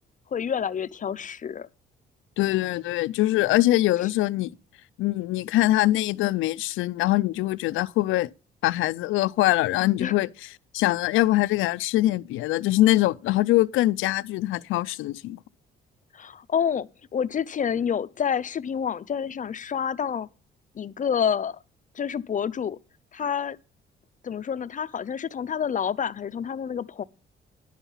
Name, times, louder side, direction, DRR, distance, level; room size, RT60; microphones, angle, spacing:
voice 1, 0.3-1.7 10.0-10.1 16.1-20.3 20.8-21.6 22.0-22.8 23.1-23.6 24.2-27.0, left 7 dB, 40° left, 0.6 m, -28 dB
voice 2, 2.4-4.5 5.0-8.3 8.6-10.5 10.7-15.4, left 16 dB, 85° left, 0.4 m, -23 dB
11.0 x 7.2 x 5.5 m
cardioid pair, 90°, 20 cm